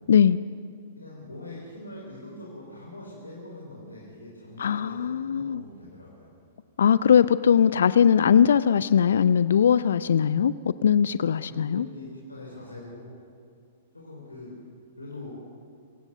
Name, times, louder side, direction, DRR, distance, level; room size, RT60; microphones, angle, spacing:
voice 1, 0.1-0.4 4.6-5.6 6.8-11.9, left 8 dB, 60° left, 16 dB, 0.4 m, -20 dB
voice 2, 1.0-6.3 11.3-13.1 13.9-14.5 15.0-15.4, left 2 dB, 80° left, -4 dB, 4.6 m, -43 dB
26.0 x 16.0 x 6.8 m, 2.2 s
figure-of-eight pair, 105°, 0 cm